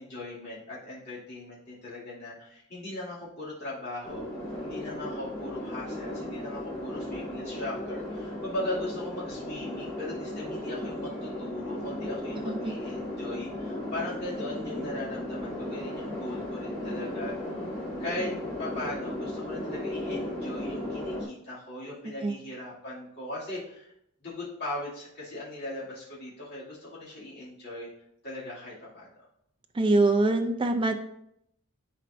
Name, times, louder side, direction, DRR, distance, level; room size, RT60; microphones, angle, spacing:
voice 1, 0.0-4.2 4.6-17.3 18.0-18.3 18.6-23.9 24.2-27.9 28.2-29.1, left 1 dB, 50° left, -7 dB, 2.3 m, -38 dB
sound 1, 4.0-21.2, left 1 dB, 5° left, 2.7 m, -35 dB
voice 2, 22.0-22.4 29.7-30.9, right 2 dB, 25° right, 5 dB, 0.4 m, -24 dB
11.0 x 4.5 x 2.5 m, 0.75 s
head